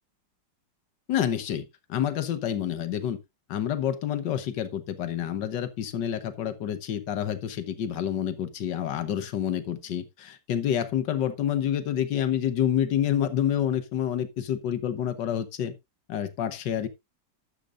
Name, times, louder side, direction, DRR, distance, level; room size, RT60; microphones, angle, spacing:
voice 1, 1.1-3.2 3.5-15.7 16.1-16.9, left 10 dB, 70° left, 1.7 m, -28 dB
12.0 x 9.3 x 2.5 m
omnidirectional pair, 2.0 m